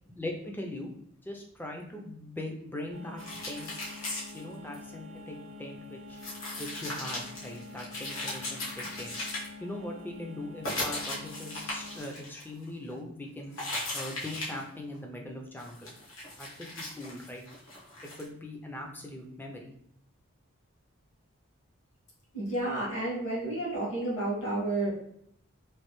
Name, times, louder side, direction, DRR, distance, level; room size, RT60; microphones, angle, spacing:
voice 1, 0.0-0.9 1.2-3.7 4.3-6.2 6.6-9.2 9.6-13.6 13.9-16.0 16.4-17.4 18.2-19.7, left 1 dB, 10° left, 1 dB, 0.4 m, -41 dB
sound 1, 2.9-12.0, left 3 dB, 65° right, 0.5 m, -47 dB
sound 2, 3.2-4.8 6.2-9.5 9.7-9.8 10.6-13.0 13.5-14.6 14.9-15.0 15.6-18.2, left 2 dB, 70° left, 1.2 m, -37 dB
voice 2, 22.3-24.9, right 2 dB, 55° left, -5 dB, 1.5 m, -31 dB
3.2 x 2.5 x 3.0 m, 0.71 s
head